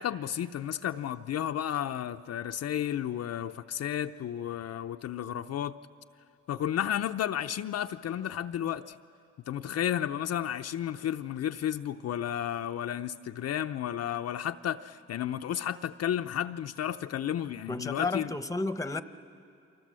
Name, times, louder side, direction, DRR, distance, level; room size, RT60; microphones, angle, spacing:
voice 1, 0.0-5.7 6.5-9.0 9.5-18.3, left 10 dB, 55° left, 7 dB, 0.6 m, -32 dB
voice 2, 17.7-19.0, left 3 dB, 10° left, 11 dB, 0.9 m, -32 dB
29.5 x 24.0 x 7.6 m, 2.5 s
cardioid pair, 90°, 30 cm